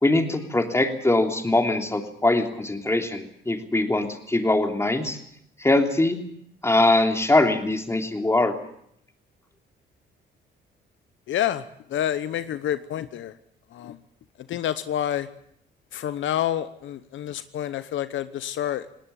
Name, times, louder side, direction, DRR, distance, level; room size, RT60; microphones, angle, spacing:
voice 1, 0.0-5.2 5.6-6.2 6.6-8.5, left 2 dB, 15° left, 4 dB, 3.1 m, -22 dB
voice 2, 11.3-13.4 13.7-14.0 14.4-15.3 15.9-18.9, left 11 dB, 75° left, 13 dB, 1.0 m, -28 dB
19.5 x 18.5 x 8.6 m, 0.70 s
cardioid pair, 90°, 20 cm